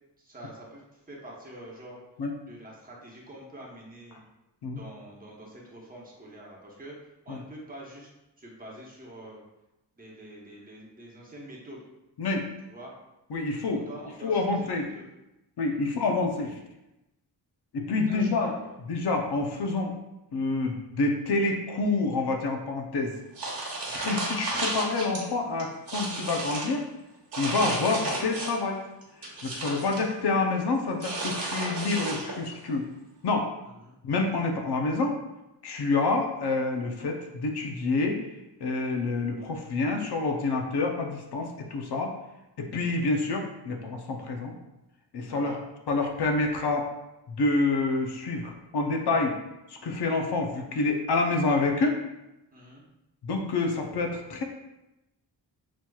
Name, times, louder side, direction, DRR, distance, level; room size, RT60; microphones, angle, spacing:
voice 1, 0.2-2.0 2.4-4.2 4.7-8.1 8.4-9.4 9.9-11.8 12.7-12.9 13.7-15.0 15.7-15.9 18.1-18.5 23.8-24.1 33.8-33.9 45.3-45.6 52.5-52.8, right 1 dB, 20° right, -4 dB, 1.0 m, -46 dB
voice 2, 13.3-13.8 14.2-14.9 15.6-16.6 17.7-18.5 18.9-19.9 20.3-23.1 23.9-26.9 27.4-28.8 29.4-32.9 33.2-33.5 34.0-35.2 35.6-38.2 38.6-42.1 42.6-44.5 45.1-45.5 45.9-46.9 47.3-49.3 49.7-52.0 53.2-54.4, left 3 dB, 65° left, 2 dB, 0.6 m, -27 dB
sound 1, 23.4-25.2 25.6-26.7 27.3-28.7 29.0-30.1 31.0-32.5, right 2 dB, 55° right, 1.2 m, -33 dB
6.2 x 2.9 x 2.3 m, 0.95 s
wide cardioid pair, 125°, 43 cm